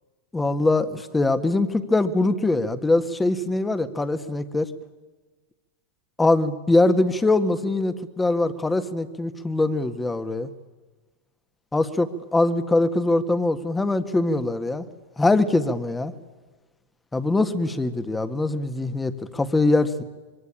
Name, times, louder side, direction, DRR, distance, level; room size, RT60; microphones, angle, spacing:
voice 1, 0.3-4.7 6.2-10.5 11.7-14.9 15.2-16.1 17.1-20.0, left 2 dB, 10° left, 11 dB, 1.7 m, -22 dB
25.0 x 22.5 x 8.9 m, 1.3 s
hypercardioid pair, 110°, 0 cm